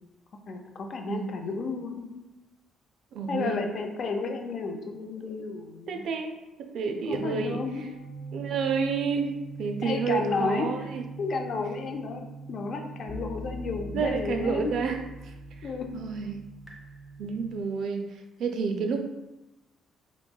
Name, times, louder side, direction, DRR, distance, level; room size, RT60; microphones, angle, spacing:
voice 1, 0.5-2.1 3.3-6.0 7.1-7.8 9.8-10.9 11.2-12.2 12.5-14.7 15.6-15.9, left 4 dB, 45° left, 4 dB, 0.4 m, -32 dB
voice 2, 1.1-1.5 3.1-3.6 5.9-7.6 8.3-9.3 9.6-11.0 13.9-15.3 15.9-16.4 17.2-18.1 18.4-19.0, right 5 dB, 65° right, 5 dB, 0.3 m, -30 dB
sound 1, 7.1-17.6, right 3 dB, ahead, 0.6 m, -41 dB
3.4 x 2.9 x 2.2 m, 1.0 s
cardioid pair, 150°, 0 cm